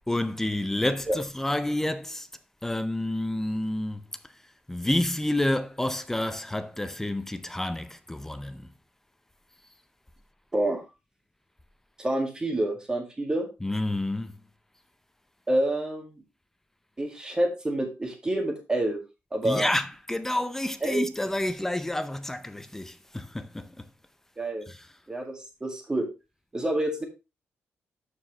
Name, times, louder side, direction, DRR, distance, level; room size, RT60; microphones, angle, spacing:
voice 1, 0.1-2.3 2.6-4.0 4.7-8.7 13.6-14.4 19.4-23.8 24.7-24.8, left 1 dB, 10° left, 0.5 m, -29 dB
voice 2, 10.5-10.8 12.0-13.5 15.5-16.1 17.0-19.0 19.3-19.7 20.8-21.0 24.4-24.7 25.1-26.1 26.5-27.1, right 1 dB, 15° right, 2.0 m, -27 dB
13.0 x 4.7 x 3.2 m
cardioid pair, 135°, 4 cm